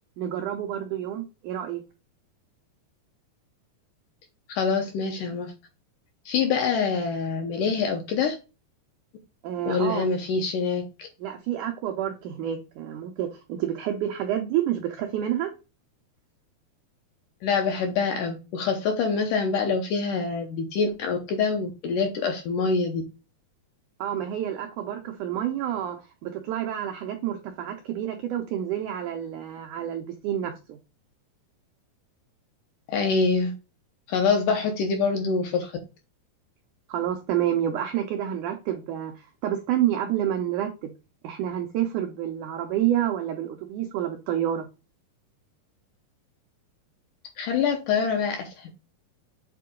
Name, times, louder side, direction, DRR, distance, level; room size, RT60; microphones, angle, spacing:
voice 1, 0.2-1.8 9.4-10.1 11.2-15.5 24.0-30.8 36.9-40.9 41.2-44.7, right 11 dB, 90° right, 1.8 m, -29 dB
voice 2, 4.5-5.5 6.3-8.4 9.7-11.1 17.4-23.0 32.9-33.5 34.1-35.7 47.4-48.7, left 5 dB, 75° left, 2.0 m, -25 dB
7.6 x 3.8 x 3.7 m
omnidirectional pair, 4.6 m